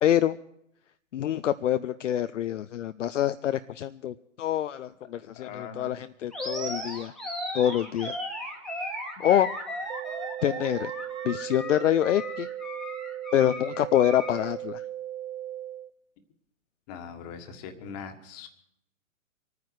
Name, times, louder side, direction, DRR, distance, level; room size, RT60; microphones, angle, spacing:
voice 1, 0.0-0.4 1.1-7.1 7.5-8.2 9.2-9.5 10.4-10.9 11.2-12.5 13.3-14.8, left 11 dB, 60° left, 11 dB, 0.6 m, -26 dB
voice 2, 5.3-6.0 16.9-18.5, left 6 dB, 30° left, 7 dB, 1.6 m, -41 dB
Animal, 6.3-14.5, equal, ahead, 1.5 m, -36 dB
sound 1, 9.9-15.9, right 12 dB, 60° right, 0.8 m, -37 dB
24.5 x 9.5 x 4.7 m, 0.76 s
hypercardioid pair, 130°, 41 cm